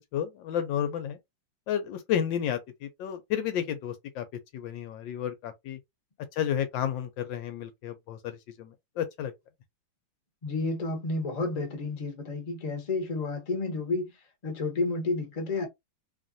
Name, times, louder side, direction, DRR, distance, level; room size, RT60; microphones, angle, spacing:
voice 1, 0.1-1.2 1.7-4.2 4.5-5.8 6.4-8.7 9.0-9.3, left 9 dB, 75° left, 1.2 m, -31 dB
voice 2, 10.4-14.1 14.4-15.7, left 3 dB, 30° left, 0.7 m, -30 dB
3.1 x 2.4 x 2.6 m
omnidirectional pair, 2.2 m